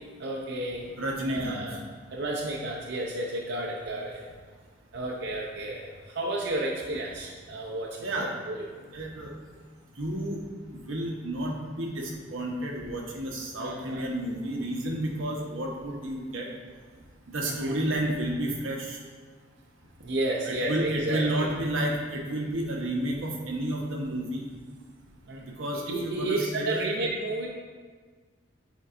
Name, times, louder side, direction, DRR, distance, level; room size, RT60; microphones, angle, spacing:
voice 1, 0.2-0.9 1.3-1.8 2.1-4.2 4.9-8.8 13.6-14.1 17.4-17.8 20.0-21.5 25.3-25.6 25.9-27.5, right 2 dB, 60° right, -3 dB, 0.6 m, -32 dB
voice 2, 1.0-1.6 8.0-8.3 8.9-9.3 10.0-10.4 10.7-16.5 17.3-19.0 20.4-24.4 25.4-26.8, right 1 dB, 90° right, -1 dB, 1.0 m, -31 dB
8.3 x 4.5 x 2.5 m, 1.5 s
head